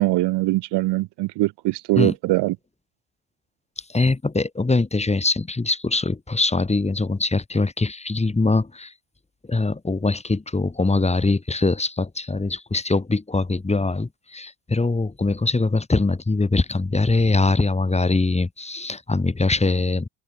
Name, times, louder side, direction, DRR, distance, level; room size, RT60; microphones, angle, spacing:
voice 1, 0.0-2.6, right 19 dB, 70° right, 6.1 m, -22 dB
voice 2, 3.9-8.9 9.5-20.1, left 3 dB, 15° left, 5.9 m, -22 dB
supercardioid pair, 90°, 42 cm